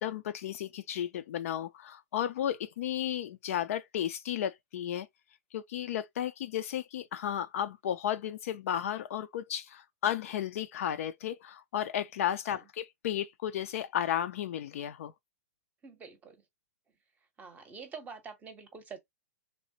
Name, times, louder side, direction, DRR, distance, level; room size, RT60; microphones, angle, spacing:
voice 1, 0.0-5.1 5.5-15.1, left 10 dB, 55° left, 0.4 m, -33 dB
voice 2, 15.8-16.4 17.4-19.0, right 5 dB, 15° right, 0.7 m, -46 dB
3.2 x 2.1 x 2.7 m
figure-of-eight pair, 110°, 9 cm